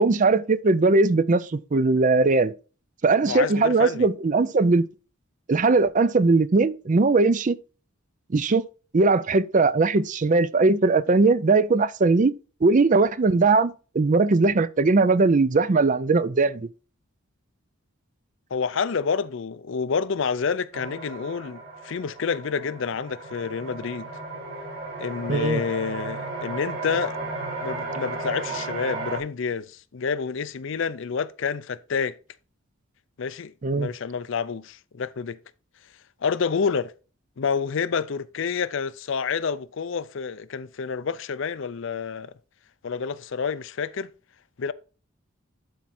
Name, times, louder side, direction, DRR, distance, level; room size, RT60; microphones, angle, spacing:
voice 1, 0.0-2.5 3.0-4.8 5.5-7.6 8.3-8.6 8.9-12.3 12.6-16.7 25.3-25.6 33.6-33.9, right 3 dB, 35° right, 0.5 m, -20 dB
voice 2, 3.2-4.1 18.5-24.1 25.0-27.2 27.6-32.2 33.2-35.4 36.2-36.9 37.4-42.3 42.8-44.1 44.6-44.7, left 6 dB, 60° left, 0.5 m, -28 dB
sound 1, 20.7-29.2, right 3 dB, 60° right, 4.3 m, -34 dB
11.5 x 4.7 x 4.2 m
head